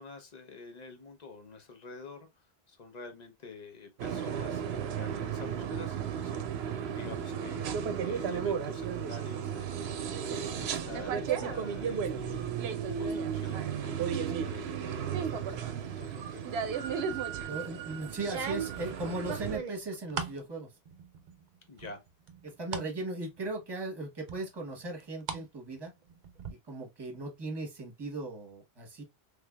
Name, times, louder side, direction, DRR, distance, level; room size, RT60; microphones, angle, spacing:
voice 1, 0.0-2.3 2.7-17.2 21.7-22.0, left 3 dB, 45° left, 0.9 m, -48 dB
sound 1, 4.0-19.6, right 7 dB, 90° right, 0.9 m, -34 dB
sound 2, 17.1-17.5 18.2-20.4 20.9-21.4 21.8-22.9 23.3-23.4 24.3-25.4 25.7-26.5, right 6 dB, 50° right, 0.7 m, -39 dB
voice 2, 17.4-20.7 22.4-25.9 26.7-29.0, right 2 dB, 25° right, 1.1 m, -38 dB
3.3 x 3.3 x 2.3 m
omnidirectional pair, 1.0 m